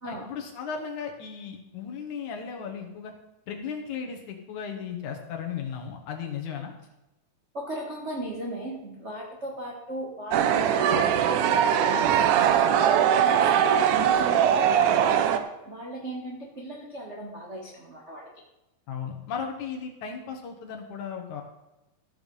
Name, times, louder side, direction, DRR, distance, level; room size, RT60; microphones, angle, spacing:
voice 1, 0.0-3.1 3.5-6.7 18.9-21.4, left 7 dB, 65° left, 3 dB, 2.5 m, -35 dB
voice 2, 7.5-11.1 11.7-14.7 15.0-18.3, right 1 dB, 40° right, -3 dB, 0.9 m, -37 dB
sound 1, 10.3-15.4, right 9 dB, 75° right, 2.0 m, -21 dB
14.0 x 7.0 x 5.4 m, 0.95 s
omnidirectional pair, 4.1 m